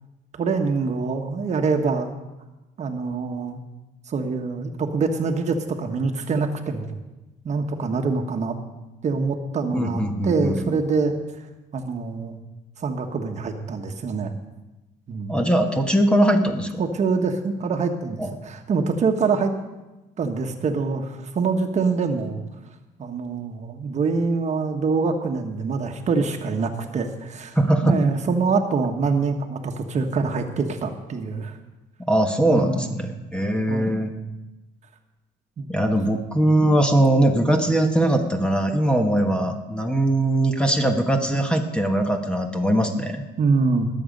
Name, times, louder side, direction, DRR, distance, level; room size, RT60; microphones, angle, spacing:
voice 1, 0.4-2.1 2.8-3.6 4.1-7.0 7.4-8.5 9.0-11.1 11.7-12.4 12.8-14.3 15.1-15.4 16.8-19.5 20.2-22.4 23.0-27.6 27.8-31.5 32.5-32.9 33.7-34.1 35.6-35.7 43.4-43.9, right 4 dB, 45° right, 5 dB, 1.3 m, -25 dB
voice 2, 9.7-10.7 15.3-16.8 18.2-18.3 27.5-28.0 32.1-34.1 35.7-43.2, right 1 dB, 5° left, 4 dB, 1.3 m, -21 dB
20.5 x 7.9 x 5.3 m, 1.1 s
cardioid pair, 110°, 17 cm